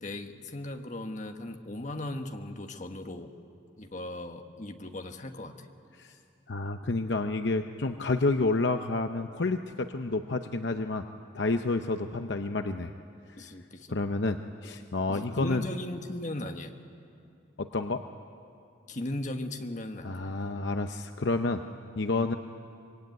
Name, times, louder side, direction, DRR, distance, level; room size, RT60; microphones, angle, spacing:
voice 1, 0.0-3.3 3.8-5.7 13.4-14.0 15.1-16.7 18.9-20.1, left 1 dB, 40° left, 5 dB, 1.4 m, -37 dB
voice 2, 6.5-11.0 11.3-12.9 13.9-15.7 17.6-18.0 20.0-21.6 22.0-22.4, left 3 dB, 60° left, 7 dB, 0.7 m, -29 dB
25.5 x 22.0 x 9.4 m, 2.5 s
head